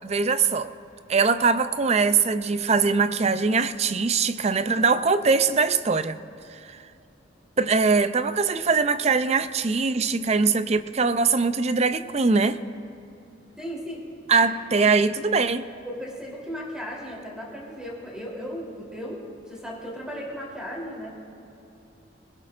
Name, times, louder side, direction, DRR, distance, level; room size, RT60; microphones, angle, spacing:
voice 1, 0.0-0.7 1.1-6.2 6.5-6.8 7.6-12.6 14.3-15.7, right 4 dB, 30° right, 12 dB, 0.4 m, -22 dB
voice 2, 13.6-14.5 15.8-21.1, equal, 5° right, -4 dB, 3.2 m, -36 dB
26.5 x 16.5 x 2.5 m, 2.8 s
head